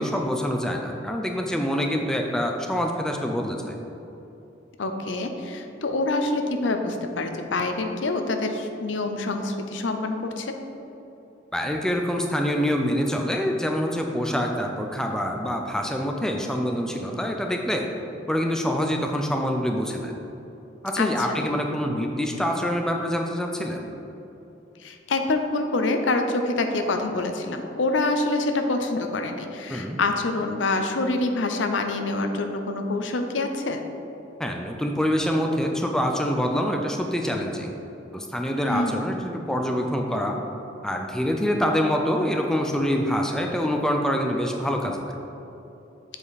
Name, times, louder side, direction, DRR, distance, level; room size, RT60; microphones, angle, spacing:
voice 1, 0.0-3.8 11.5-17.9 18.3-20.1 20.8-23.9 29.7-30.0 34.4-37.8 38.1-40.3 40.8-45.0, equal, 5° left, 2 dB, 0.4 m, -25 dB
voice 2, 4.8-10.5 21.0-21.5 24.8-33.8 38.7-39.1, left 2 dB, 80° left, 6 dB, 0.6 m, -26 dB
7.3 x 5.0 x 4.1 m, 2.9 s
head